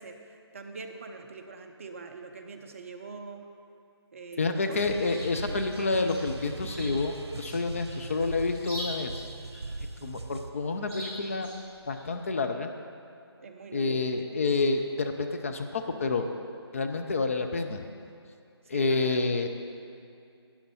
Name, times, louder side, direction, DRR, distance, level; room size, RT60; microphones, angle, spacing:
voice 1, 0.0-3.5 4.1-4.8 5.1-5.6 13.4-14.1 18.7-19.2, right 4 dB, 30° right, 4 dB, 0.6 m, -44 dB
voice 2, 4.4-9.2 10.0-11.5 11.9-12.7 13.7-16.3 16.7-17.8 18.7-19.5, left 3 dB, 30° left, 5 dB, 0.5 m, -29 dB
Chirp tweet, 4.7-12.3, equal, 10° left, 3.2 m, -45 dB
sound 1, 4.8-10.5, right 3 dB, 70° right, 1.0 m, -39 dB
12.0 x 9.9 x 4.2 m, 2.4 s
figure-of-eight pair, 160°, 14 cm